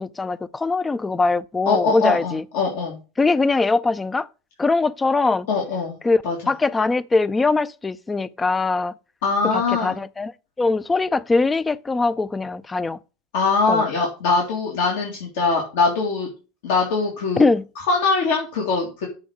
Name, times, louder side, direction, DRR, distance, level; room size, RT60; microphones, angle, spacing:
voice 1, 0.0-2.4 3.2-4.3 4.6-5.5 6.0-8.9 9.4-10.3 10.6-13.0 13.7-13.8 17.4-17.6, left 3 dB, 15° left, 0.4 m, -21 dB
voice 2, 1.7-3.0 5.5-6.0 6.2-6.4 9.2-10.0 13.3-16.3 16.6-17.4 17.9-19.1, left 4 dB, 80° left, 2.0 m, -22 dB
7.1 x 3.4 x 6.3 m
supercardioid pair, 125°, 0 cm